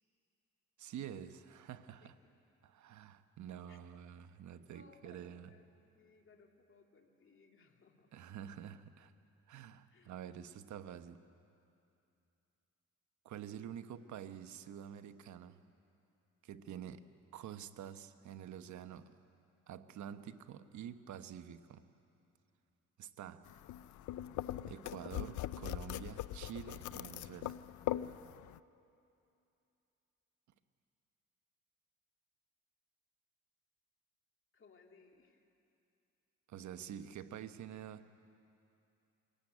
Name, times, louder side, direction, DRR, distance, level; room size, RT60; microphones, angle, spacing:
voice 1, 0.8-2.2 2.6-5.5 8.1-9.1 9.5-11.2 13.2-15.6 16.4-17.1 17.3-19.2 19.7-21.9 23.0-23.6 24.7-27.6 36.5-38.3, right 9 dB, 70° right, 1.0 m, -48 dB
voice 2, 4.7-8.1 9.9-10.1 34.5-35.4, left 4 dB, 40° left, 2.4 m, -64 dB
sound 1, 23.5-28.6, left 13 dB, 75° left, 0.6 m, -41 dB
23.5 x 15.5 x 9.8 m
cardioid pair, 90°, 30 cm